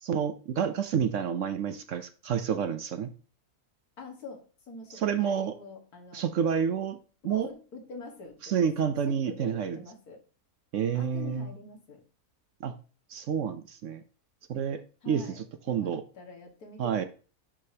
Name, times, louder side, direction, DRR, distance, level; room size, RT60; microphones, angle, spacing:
voice 1, 0.0-3.1 4.9-5.6 6.1-7.0 7.2-7.5 8.4-9.8 10.7-11.5 12.6-12.7 13.1-14.0 14.5-16.0 16.8-17.0, right 7 dB, 65° right, 10 dB, 0.9 m, -29 dB
voice 2, 4.0-6.2 7.2-10.2 10.9-12.0 15.0-15.4 15.8-17.1, left 3 dB, 80° left, 2 dB, 2.1 m, -45 dB
11.0 x 5.0 x 2.8 m, 0.37 s
omnidirectional pair, 1.6 m